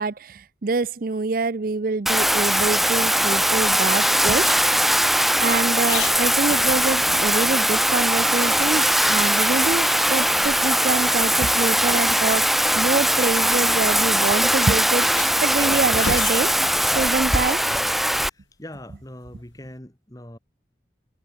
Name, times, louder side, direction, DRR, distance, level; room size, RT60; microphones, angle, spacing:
voice 1, 0.0-5.0 5.4-12.5 12.7-16.6 16.9-17.6, right 3 dB, 50° right, 0.6 m, -25 dB
Bathtub (filling or washing), 2.1-18.3, equal, ahead, 0.6 m, -20 dB
sound 1, 5.9-7.2 7.6-7.7 8.0-9.5 9.8-9.9 10.3-10.5 11.5-11.6 12.5-12.8 13.8-13.9 14.2-14.3 14.9-17.1 19.3-19.8, left 6 dB, 85° left, 3.0 m, -36 dB
voice 2, 18.3-20.4, left 1 dB, 20° left, 2.1 m, -41 dB
head